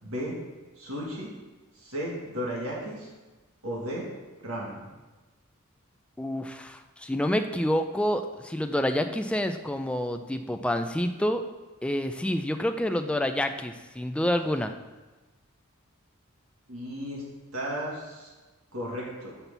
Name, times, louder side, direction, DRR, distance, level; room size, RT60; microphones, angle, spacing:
voice 1, 0.0-0.3 0.8-1.3 1.8-3.1 3.6-4.1 4.4-4.9 16.7-17.2 17.5-18.3 18.7-19.4, equal, 80° right, -4 dB, 1.8 m, -34 dB
voice 2, 6.2-11.4 11.8-14.7, left 1 dB, 5° left, 6 dB, 0.4 m, -28 dB
6.0 x 5.7 x 6.8 m, 1.2 s
head